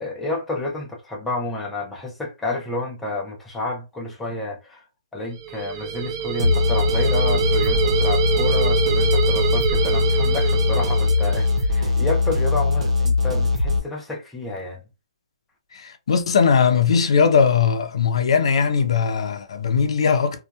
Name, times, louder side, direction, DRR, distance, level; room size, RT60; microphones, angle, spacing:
voice 1, 0.0-4.8 5.1-14.8, left 2 dB, 5° left, 0.5 m, -30 dB
sound 1, 5.3-11.7, right 8 dB, 35° right, 0.7 m, -25 dB
sound 2, 6.4-13.8, left 3 dB, 80° right, 0.9 m, -21 dB
voice 2, 15.7-20.4, left 6 dB, 60° left, 0.5 m, -19 dB
2.7 x 2.2 x 2.2 m
hypercardioid pair, 160°, 3 cm